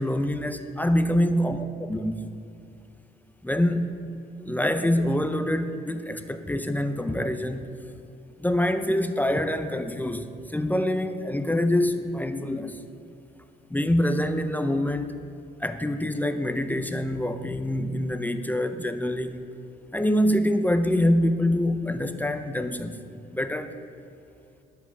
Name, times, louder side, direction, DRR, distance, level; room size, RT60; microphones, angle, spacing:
voice 1, 0.0-2.2 3.4-4.0 4.4-7.7 8.4-12.8 13.7-15.1 15.6-19.5 19.9-23.0 23.3-23.7, left 1 dB, 10° left, 8 dB, 0.6 m, -25 dB
18.0 x 7.7 x 3.4 m, 2.5 s
cardioid pair, 90°, 20 cm